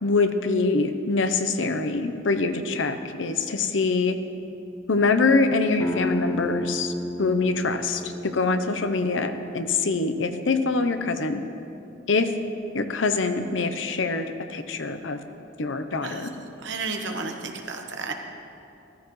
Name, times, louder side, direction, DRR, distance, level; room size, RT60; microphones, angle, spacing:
voice 1, 0.0-4.2 4.9-6.9 7.2-11.4 12.1-12.3 12.7-15.2 15.6-16.3, left 3 dB, 80° left, 8 dB, 0.7 m, -24 dB
sound 1, 5.8-11.2, left 1 dB, 10° left, 0.6 m, -33 dB
voice 2, 16.6-18.1, right 4 dB, 70° right, 3 dB, 1.1 m, -32 dB
14.5 x 14.0 x 3.2 m, 2.7 s
head